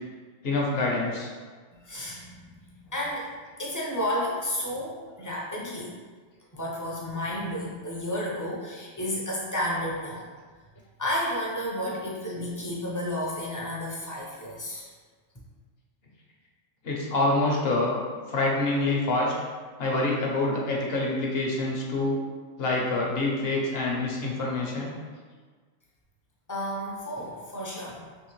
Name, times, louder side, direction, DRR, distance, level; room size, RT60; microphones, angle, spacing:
voice 1, 0.4-1.3 16.8-18.0 18.3-19.3 19.8-22.2 22.6-25.0, left 2 dB, 60° left, -2 dB, 0.9 m, -26 dB
voice 2, 1.7-2.6 2.9-5.9 6.5-10.3 11.0-14.9 26.5-28.0, left 1 dB, 25° left, -4 dB, 0.4 m, -32 dB
3.5 x 2.9 x 3.0 m, 1.5 s
omnidirectional pair, 1.2 m